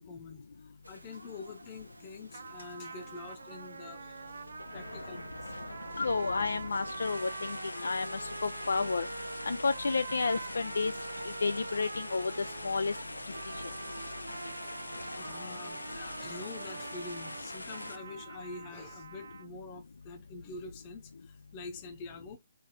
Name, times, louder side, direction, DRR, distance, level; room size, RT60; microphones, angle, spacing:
voice 1, 0.0-4.4 4.7-5.5 15.2-22.4, left 3 dB, 30° left, 1.0 m, -46 dB
sound 1, 0.8-17.9, right 1 dB, 85° right, 0.9 m, -52 dB
sound 2, 2.3-19.5, right 5 dB, 65° right, 0.4 m, -45 dB
sound 3, 4.1-18.0, left 2 dB, 85° left, 0.7 m, -43 dB
voice 2, 6.0-9.1 9.4-11.0 11.2-13.0 13.3-13.7, left 4 dB, 70° left, 0.4 m, -31 dB
4.2 x 2.7 x 4.2 m
figure-of-eight pair, 135°, 0 cm